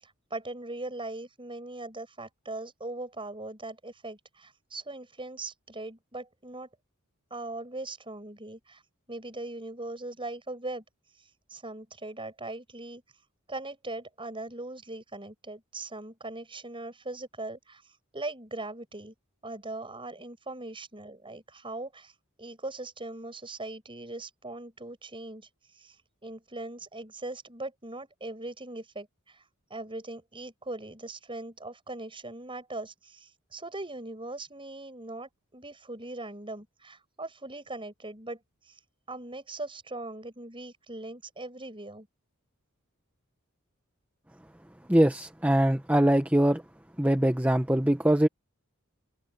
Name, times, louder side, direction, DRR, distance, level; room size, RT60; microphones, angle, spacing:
voice 1, 0.0-6.7 7.3-8.8 9.1-10.8 11.5-13.0 13.5-17.8 18.1-19.1 19.4-22.1 22.4-26.0 26.2-29.4 29.7-38.4 38.7-38.8 39.1-42.1, right 2 dB, 25° right, 7.5 m, -40 dB
voice 2, 44.9-46.6 47.0-48.3, right 1 dB, 10° right, 1.1 m, -22 dB
head